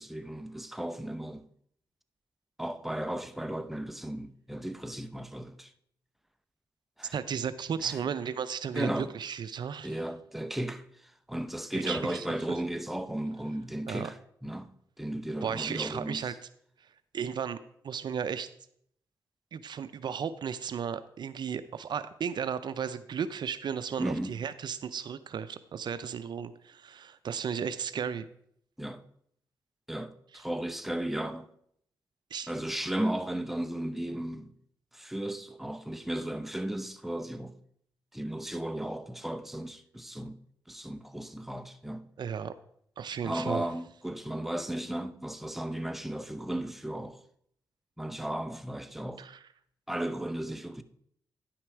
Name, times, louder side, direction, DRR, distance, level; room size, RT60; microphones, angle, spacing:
voice 1, 0.0-1.5 2.6-5.7 7.0-7.1 7.8-8.0 8.7-9.1 9.8-16.3 24.0-24.4 28.8-29.0 29.9-31.5 32.5-34.5 34.9-37.6 38.1-40.4 40.7-42.1 43.2-47.2 48.0-49.2 49.9-50.8, right 1 dB, 5° right, 0.7 m, -35 dB
voice 2, 7.1-10.0 11.7-12.2 13.9-14.1 15.4-16.3 17.1-17.6 17.8-18.5 19.5-28.3 32.3-32.5 42.2-42.5 43.0-43.7 49.2-49.4, right 7 dB, 65° right, 0.5 m, -34 dB
10.0 x 5.8 x 4.7 m
cardioid pair, 55°, 8 cm